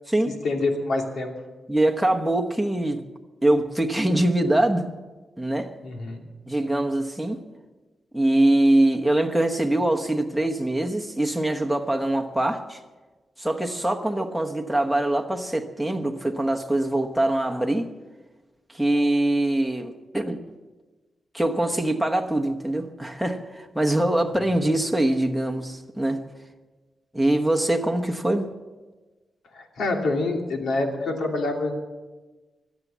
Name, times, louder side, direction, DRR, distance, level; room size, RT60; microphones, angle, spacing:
voice 1, 0.4-1.3 5.8-6.3 29.5-31.7, left 2 dB, 80° left, 2 dB, 2.7 m, -26 dB
voice 2, 1.7-3.0 3.4-4.9 5.4-5.7 6.5-7.4 8.1-12.8 13.4-17.9 18.7-20.4 21.3-26.2 27.1-28.5, right 1 dB, ahead, 2 dB, 1.1 m, -23 dB
24.0 x 8.2 x 7.4 m, 1.2 s
wide cardioid pair, 170°, 0 cm